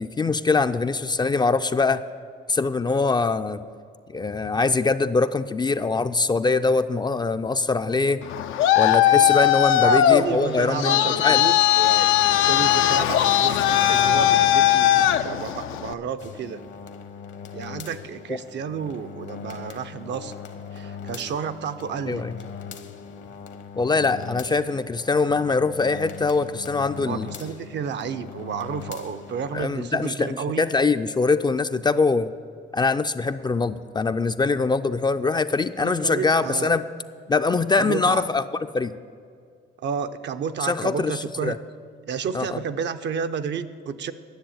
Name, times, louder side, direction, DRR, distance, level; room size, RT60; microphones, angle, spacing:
voice 1, 0.0-2.0 2.5-3.6 4.1-8.2 8.8-11.4 18.3-18.4 22.1-22.3 23.8-27.3 29.5-32.3 32.7-36.8 37.3-38.4 38.7-38.9 40.6-41.6 42.3-42.6, left 4 dB, 20° left, 10 dB, 0.4 m, -23 dB
Traffic noise roadway noise, 8.2-15.9, left 12 dB, 85° left, 0.5 m, -19 dB
voice 2, 9.7-12.1 12.4-16.6 17.5-20.4 20.7-22.2 27.1-30.7 35.8-36.7 37.8-38.2 39.8-41.6 42.1-44.1, right 7 dB, 65° right, 10 dB, 0.6 m, -31 dB
sound 1, 16.2-29.6, left 6 dB, 65° left, 1.0 m, -40 dB
10.5 x 7.1 x 8.6 m, 2.2 s
cardioid pair, 90°, 20 cm